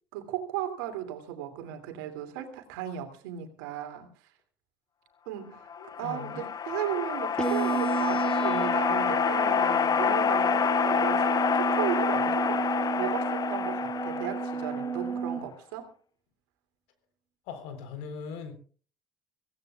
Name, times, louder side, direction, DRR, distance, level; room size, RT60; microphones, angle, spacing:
voice 1, 0.1-4.1 5.3-5.7 6.0-15.9, right 11 dB, 80° right, 2.7 m, -36 dB
sound 1, 5.7-15.2, left 7 dB, 40° left, 0.7 m, -28 dB
voice 2, 5.8-6.5 17.5-18.5, left 6 dB, 75° left, 3.8 m, -40 dB
sound 2, 7.4-15.4, right 5 dB, 10° left, 6.5 m, -32 dB
25.0 x 17.0 x 2.4 m
hypercardioid pair, 60°, 11 cm